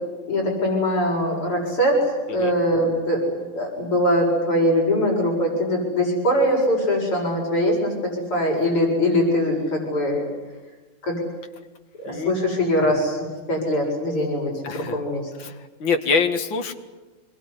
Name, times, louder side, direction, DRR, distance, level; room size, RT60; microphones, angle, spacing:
voice 1, 0.3-2.0 2.3-7.9 8.3-10.2 11.1-11.2 12.0-15.2, equal, 80° left, 0 dB, 8.3 m, -22 dB
voice 2, 14.6-15.0 15.4-15.5 15.8-16.7, left 5 dB, 60° left, 5 dB, 2.9 m, -24 dB
26.5 x 22.5 x 10.0 m, 1.2 s
omnidirectional pair, 2.4 m